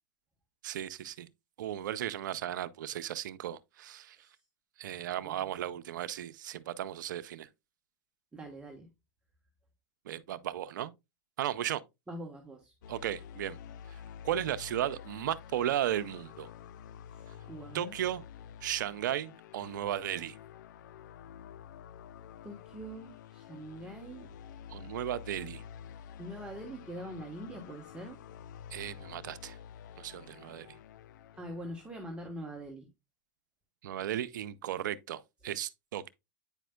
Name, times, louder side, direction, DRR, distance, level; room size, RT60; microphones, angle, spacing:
voice 1, 0.6-1.3 1.6-4.2 4.8-7.5 10.0-10.9 11.4-11.8 12.9-13.6 13.9-16.5 17.7-18.3 18.6-20.4 24.7-25.6 28.7-29.6 30.0-30.8 33.8-36.1, right 11 dB, 80° right, 0.5 m, -35 dB
voice 2, 8.3-8.9 12.1-12.7 17.5-17.9 22.4-24.3 26.2-28.2 31.4-32.9, right 1 dB, 10° right, 1.2 m, -43 dB
sound 1, 12.8-32.3, left 8 dB, 75° left, 0.4 m, -49 dB
8.9 x 5.0 x 2.2 m
hypercardioid pair, 115°, 10 cm